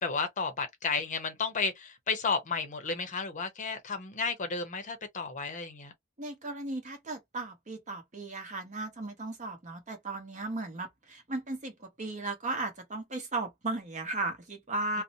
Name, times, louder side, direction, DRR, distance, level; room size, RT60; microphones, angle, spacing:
voice 1, 0.0-5.9, left 4 dB, 35° left, 0.7 m, -32 dB
voice 2, 6.2-15.0, right 2 dB, 35° right, 0.9 m, -36 dB
2.6 x 2.1 x 2.7 m
head